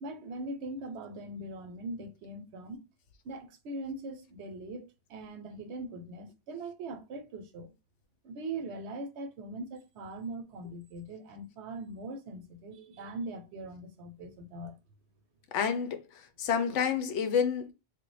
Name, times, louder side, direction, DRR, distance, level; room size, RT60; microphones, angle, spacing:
voice 1, 0.0-2.9 3.2-7.7 8.2-14.8, right 2 dB, 70° right, 0.8 m, -41 dB
voice 2, 15.5-16.0 16.4-17.7, left 7 dB, 80° left, 0.9 m, -28 dB
3.3 x 2.1 x 3.1 m
omnidirectional pair, 1.2 m